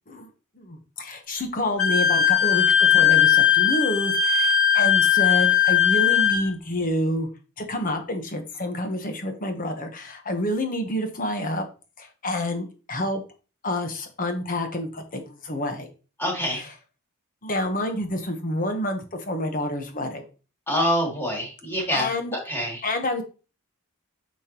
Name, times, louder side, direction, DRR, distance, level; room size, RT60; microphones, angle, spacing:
voice 1, 0.6-7.3 7.6-11.7 12.0-13.2 13.6-15.9 16.5-16.7 17.4-20.2 21.9-22.4 22.8-23.2, left 1 dB, 40° left, 6 dB, 1.1 m, -28 dB
Wind instrument woodwind instrument, 1.8-6.5, left 9 dB, 70° left, 3.0 m, -19 dB
voice 2, 16.2-16.6 20.7-22.8, equal, 10° left, -2 dB, 2.6 m, -26 dB
8.9 x 5.2 x 3.0 m, 0.34 s
head